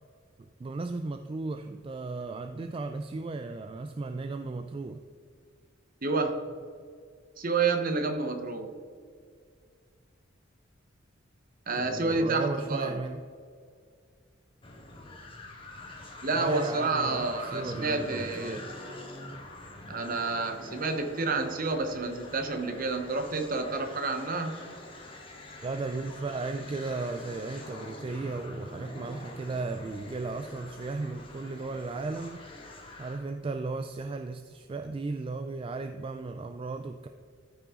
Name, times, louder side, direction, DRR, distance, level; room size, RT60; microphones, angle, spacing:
voice 1, 0.6-5.0 11.7-13.2 16.3-18.6 25.6-32.5 33.0-37.1, right 3 dB, 30° right, 7 dB, 0.3 m, -35 dB
voice 2, 6.0-6.4 7.4-8.7 11.7-12.9 16.2-18.6 19.9-24.6, right 3 dB, 45° right, 6 dB, 0.9 m, -29 dB
sound 1, 14.6-33.3, left 1 dB, 25° left, 1.4 m, -45 dB
13.5 x 5.7 x 3.7 m, 2.1 s
head